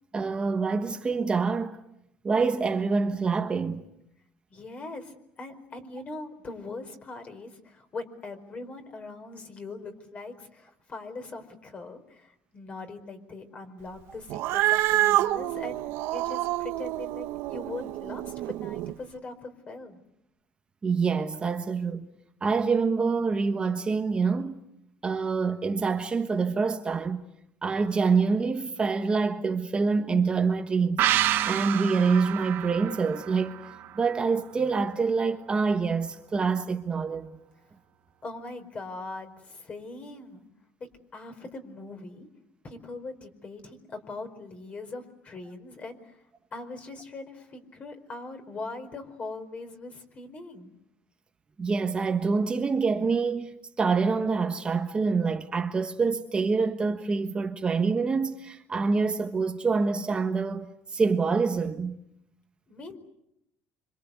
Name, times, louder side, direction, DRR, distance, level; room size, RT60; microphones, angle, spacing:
voice 1, 0.1-1.8 2.2-3.8 20.8-22.1 22.4-24.6 25.0-27.2 27.6-31.0 31.4-33.5 33.9-37.3 51.6-62.0, right 4 dB, 25° right, 1.4 m, -26 dB
voice 2, 4.5-15.8 16.1-20.0 38.2-40.4 41.1-42.3 42.6-46.2 46.5-50.7 62.7-63.0, left 3 dB, 30° left, 4.7 m, -41 dB
Cat, 14.3-18.9, right 15 dB, 75° right, 1.2 m, -27 dB
sound 1, 31.0-34.4 34.7-34.8, right 12 dB, 60° right, 2.4 m, -29 dB
27.0 x 26.0 x 8.3 m
cardioid pair, 130°, 4 cm